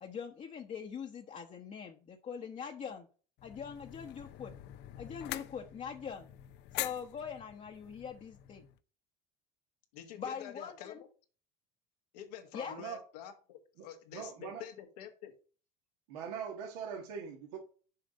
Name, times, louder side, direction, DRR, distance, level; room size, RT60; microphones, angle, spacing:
voice 1, 0.0-3.1 3.4-4.5 5.0-6.3 6.7-8.7 10.1-11.0 12.5-12.8, left 7 dB, 35° left, 1 dB, 1.1 m, -42 dB
sound 1, 3.4-8.8, left 14 dB, 60° left, 0.6 m, -45 dB
voice 2, 9.9-11.1 12.1-15.3, left 10 dB, 80° left, 6 dB, 1.6 m, -48 dB
voice 3, 12.7-13.0 13.8-14.6 16.1-17.6, right 7 dB, 80° right, 1 dB, 1.7 m, -42 dB
6.7 x 5.1 x 5.1 m, 0.39 s
hypercardioid pair, 85°, 20 cm